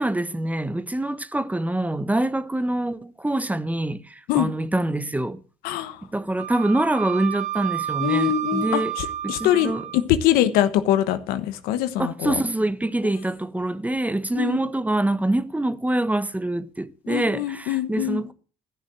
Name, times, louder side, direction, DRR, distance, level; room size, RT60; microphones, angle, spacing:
voice 1, 0.0-5.4 6.1-8.9 9.2-9.8 12.0-18.3, right 1 dB, 10° right, 1.2 m, -25 dB
voice 2, 5.6-6.0 8.0-12.4 14.3-14.6 17.1-18.2, left 12 dB, 90° left, 1.2 m, -23 dB
Wind instrument woodwind instrument, 6.4-10.0, right 11 dB, 50° right, 1.5 m, -30 dB
14.0 x 6.3 x 8.0 m
supercardioid pair, 75°, 15 cm